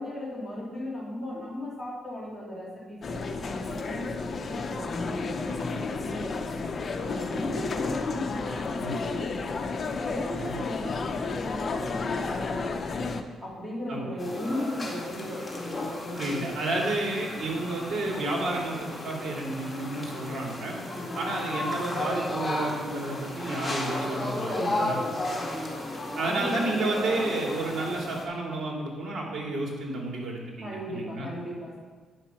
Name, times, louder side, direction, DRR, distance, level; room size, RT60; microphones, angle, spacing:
voice 1, 0.0-6.5 7.0-9.7 10.0-13.1 13.4-16.5 20.9-21.4 24.5-25.8 26.2-26.6 30.6-31.8, left 1 dB, 10° right, -6 dB, 2.5 m, -37 dB
sound 1, 3.0-13.2, left 4 dB, 45° left, 0.7 m, -32 dB
sound 2, 14.2-28.2, left 1 dB, 20° left, 2.1 m, -34 dB
voice 2, 16.1-20.8 21.1-25.0 26.1-31.3, right 2 dB, 55° right, -1 dB, 2.5 m, -31 dB
9.1 x 5.9 x 5.8 m, 1.5 s
cardioid pair, 85°, 0 cm